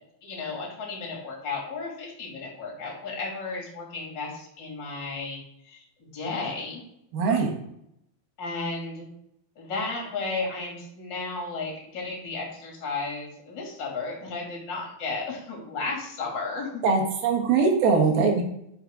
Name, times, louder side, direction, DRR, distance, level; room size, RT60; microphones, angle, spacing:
voice 1, 0.2-6.8 8.4-9.1 9.6-16.8, left 3 dB, 30° left, -2 dB, 2.8 m, -34 dB
voice 2, 7.1-7.5 16.8-18.4, right 4 dB, 70° right, 2 dB, 3.0 m, -21 dB
9.8 x 6.3 x 3.7 m, 0.76 s
omnidirectional pair, 4.8 m